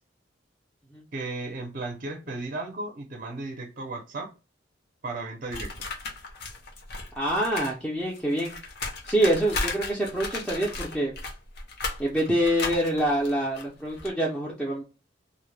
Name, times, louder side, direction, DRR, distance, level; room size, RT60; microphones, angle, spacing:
voice 1, 1.1-4.3 5.0-5.7, right 2 dB, 45° right, 3 dB, 0.5 m, -35 dB
sound 1, 5.5-7.7 8.0-14.1, left 3 dB, 55° left, 0.6 m, -35 dB
voice 2, 7.2-8.5 9.0-11.1 12.0-14.8, right 1 dB, 5° left, -4 dB, 0.4 m, -26 dB
2.1 x 2.1 x 3.1 m, 0.32 s
head